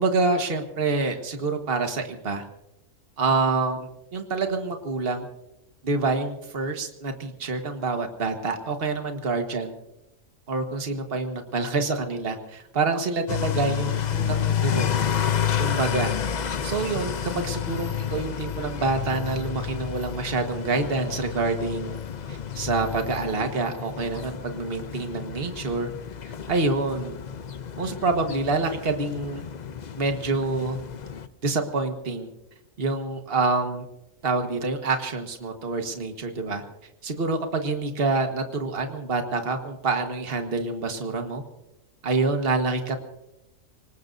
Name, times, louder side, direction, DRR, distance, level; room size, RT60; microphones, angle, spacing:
voice 1, 0.0-2.4 3.2-5.3 5.8-9.7 10.5-14.9 15.6-16.1 16.6-22.0 22.3-25.9 26.5-27.1 27.8-29.4 30.0-30.8 31.4-32.3 32.8-33.9 34.2-36.6 37.0-41.4 42.0-43.0, right 3 dB, 45° right, 5 dB, 1.6 m, -27 dB
sound 1, 13.3-31.3, left 8 dB, 45° left, 0.6 m, -30 dB
26.0 x 19.0 x 2.7 m, 0.90 s
omnidirectional pair, 1.4 m